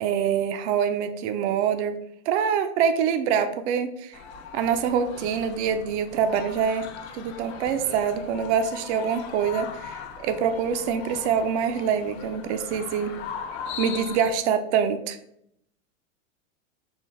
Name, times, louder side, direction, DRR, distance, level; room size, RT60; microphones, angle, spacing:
voice 1, 0.0-4.2 4.5-6.9 7.1-13.2 13.8-15.2, right 7 dB, 60° right, 9 dB, 0.5 m, -25 dB
sound 1, 4.1-14.3, left 6 dB, 55° left, 0.7 m, -39 dB
3.9 x 2.5 x 3.1 m, 0.74 s
hypercardioid pair, 100°, 39 cm